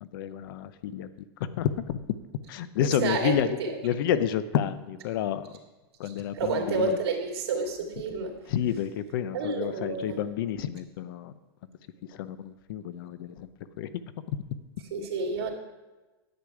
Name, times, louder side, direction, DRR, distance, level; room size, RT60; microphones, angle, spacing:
voice 1, 0.0-1.1 1.4-2.0 2.5-3.6 3.8-5.5 6.0-7.0 8.5-11.3 12.1-13.5 13.8-13.9, left 10 dB, 60° left, 14 dB, 0.6 m, -30 dB
voice 2, 2.8-3.7 6.0-8.4 9.3-10.2 14.9-15.5, right 4 dB, 80° right, 0 dB, 2.5 m, -30 dB
10.5 x 8.1 x 4.8 m, 1.2 s
supercardioid pair, 160°, 13 cm